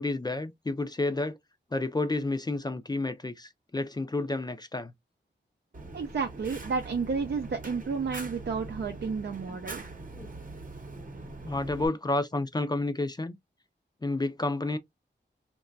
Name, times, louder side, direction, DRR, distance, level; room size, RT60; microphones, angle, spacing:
voice 1, 0.0-1.4 1.7-4.9 9.5-9.6 10.1-10.3 10.9-11.1 11.4-13.4 14.0-14.8, left 2 dB, 20° left, 0.4 m, -30 dB
Fire, 5.7-11.9, right 2 dB, 45° right, 0.8 m, -42 dB
voice 2, 5.9-9.8, right 5 dB, 65° right, 0.5 m, -31 dB
2.9 x 2.2 x 2.5 m
wide cardioid pair, 75°, 19 cm